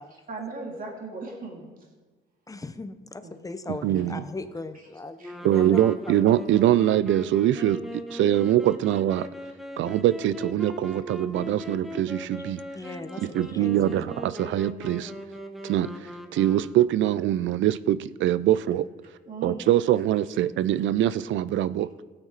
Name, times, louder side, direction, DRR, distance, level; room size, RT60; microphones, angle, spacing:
voice 1, 0.3-1.7 3.2-3.4 5.2-5.4 19.3-20.2, right 3 dB, 45° right, -1 dB, 2.9 m, -38 dB
voice 2, 2.5-5.9 12.7-14.1, left 2 dB, 15° left, 10 dB, 0.8 m, -38 dB
voice 3, 3.7-4.2 5.4-9.3 9.8-12.6 13.2-15.1 15.6-15.9 16.3-18.9 19.4-21.9, right 12 dB, 70° right, 17 dB, 0.5 m, -23 dB
sound 1, 5.2-17.1, left 1 dB, ahead, 1.3 m, -40 dB
16.0 x 8.9 x 4.1 m, 1.4 s
cardioid pair, 90°, 20 cm